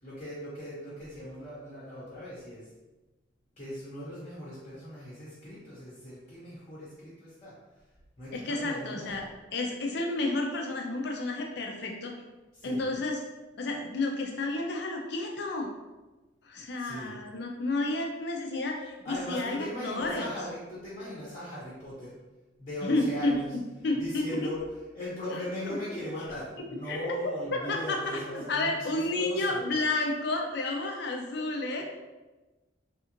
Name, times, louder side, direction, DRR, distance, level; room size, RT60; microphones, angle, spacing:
voice 1, 0.0-2.7 3.6-7.5 8.2-9.2 12.5-12.9 16.8-17.2 19.0-22.2 22.6-29.7 31.8-31.9, left 1 dB, 30° left, -8 dB, 0.9 m, -39 dB
voice 2, 8.3-9.2 9.5-12.1 12.6-13.2 13.6-15.7 16.4-20.3 22.8-23.3 23.8-24.5 25.3-26.0 26.9-27.1 27.5-31.8, left 2 dB, 60° left, 1 dB, 0.5 m, -31 dB
3.3 x 2.5 x 2.9 m, 1.1 s
head